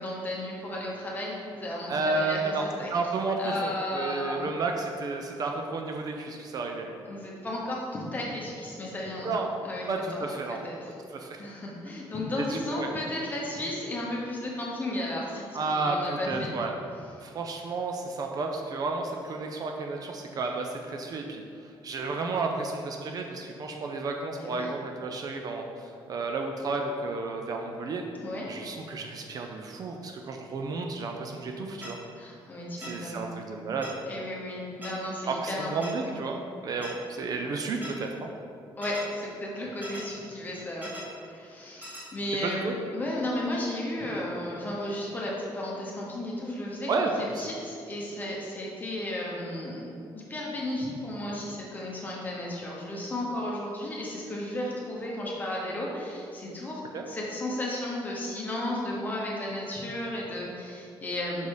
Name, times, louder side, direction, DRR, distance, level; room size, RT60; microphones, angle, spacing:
voice 1, 0.0-2.9 3.4-4.5 7.0-9.4 9.6-9.9 10.1-10.3 10.6-10.9 11.4-16.6 24.4-24.7 28.2-28.5 32.1-33.3 34.1-35.7 36.0-36.2 38.8-41.0 41.3-47.1 47.4-56.8 57.1-61.5, left 1 dB, 20° left, -3 dB, 1.0 m, -34 dB
voice 2, 1.9-6.9 9.2-9.5 9.9-10.6 11.1-11.4 12.4-12.9 15.5-16.7 17.2-28.0 28.5-32.0 32.8-34.0 35.3-38.3 42.4-42.7 46.9-47.4 56.9-57.0, right 3 dB, 45° right, 3 dB, 0.4 m, -32 dB
sound 1, 31.8-31.9 32.8-32.9 33.8-33.9 34.8-34.9 35.8-35.9 36.8-36.9 37.8-37.9 38.8-39.0 39.8-40.0 40.8-41.0 41.8-42.0, left 1 dB, 20° right, 1.4 m, -40 dB
5.4 x 4.0 x 4.8 m, 2.4 s
cardioid pair, 165°, 9 cm